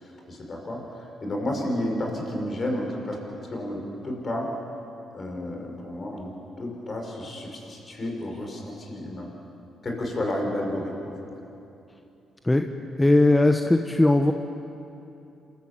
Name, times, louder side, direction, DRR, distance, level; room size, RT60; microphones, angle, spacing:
voice 1, 0.0-3.2 3.5-4.5 5.1-9.3 9.8-11.1, left 1 dB, 45° left, 1 dB, 5.6 m, -31 dB
voice 2, 13.0-14.3, left 2 dB, 15° left, 5 dB, 1.2 m, -19 dB
28.0 x 13.0 x 8.3 m, 2.8 s
hypercardioid pair, 45°, 0 cm